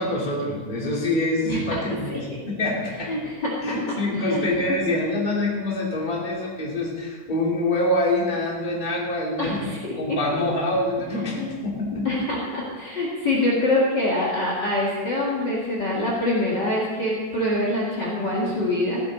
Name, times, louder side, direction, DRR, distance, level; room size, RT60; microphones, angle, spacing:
voice 1, 0.0-3.1 3.6-9.7 10.0-12.1, left 1 dB, 15° left, -3 dB, 2.5 m, -25 dB
voice 2, 1.5-1.8 2.1-2.2 3.0-3.6 4.2-4.4 9.4-10.4 11.3-11.5 12.0-19.0, left 1 dB, 35° left, -4 dB, 2.4 m, -25 dB
15.5 x 13.0 x 4.1 m, 1.4 s
omnidirectional pair, 3.6 m